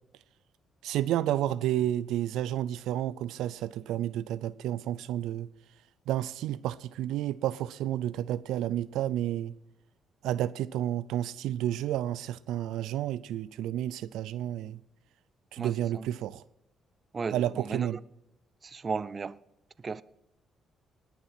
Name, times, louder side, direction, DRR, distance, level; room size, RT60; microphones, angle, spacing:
voice 1, 0.8-5.5 6.1-9.5 10.2-14.8 15.5-16.4 17.3-18.0, right 12 dB, 90° right, 0.4 m, -31 dB
voice 2, 15.6-16.1 17.1-17.9 18.6-19.4 19.8-20.0, right 5 dB, 35° right, 0.5 m, -35 dB
19.5 x 7.2 x 5.8 m
cardioid pair, 90°, 0 cm